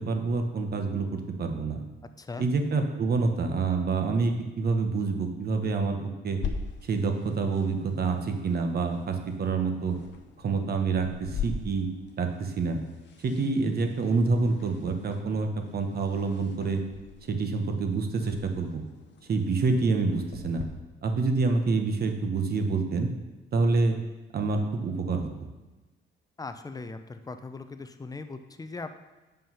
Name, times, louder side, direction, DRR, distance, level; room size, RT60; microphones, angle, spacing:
voice 1, 0.0-1.8 2.4-6.0 6.2-6.4 6.8-10.0 10.4-11.9 12.2-12.8 13.2-16.8 17.3-18.8 19.3-20.6 21.0-23.1 23.5-24.0 24.3-25.5, right 4 dB, 50° right, 5 dB, 1.1 m, -27 dB
sound 1, 6.4-20.6, left 5 dB, 60° left, 0.9 m, -42 dB
voice 2, 26.4-29.0, left 3 dB, 20° left, 8 dB, 0.6 m, -39 dB
7.4 x 5.5 x 5.6 m, 1.2 s
cardioid pair, 90°, 20 cm